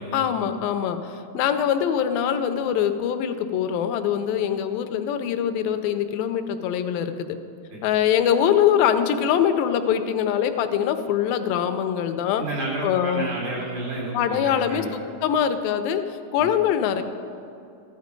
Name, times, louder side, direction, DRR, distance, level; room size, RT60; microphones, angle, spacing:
voice 1, 0.1-7.4 7.8-12.5 12.8-13.3 14.1-14.9 15.2-17.0, left 9 dB, 80° left, 8 dB, 2.2 m, -23 dB
voice 2, 12.4-14.9 16.3-16.5, right 2 dB, 80° right, -6 dB, 5.2 m, -31 dB
15.0 x 11.5 x 5.2 m, 2.6 s
omnidirectional pair, 4.5 m